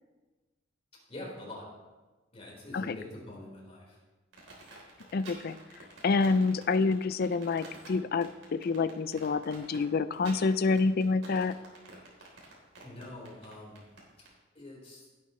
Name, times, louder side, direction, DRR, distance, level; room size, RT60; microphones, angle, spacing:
voice 1, 1.1-1.7 2.3-4.0 12.8-13.8 14.2-14.3 14.5-15.1, left 1 dB, 35° left, -4 dB, 4.4 m, -45 dB
sound 1, 4.3-14.3, right 3 dB, 75° right, 3.8 m, -50 dB
voice 2, 5.1-5.6 6.0-11.5, left 4 dB, 50° left, 14 dB, 0.4 m, -27 dB
17.0 x 9.2 x 3.2 m, 1.2 s
head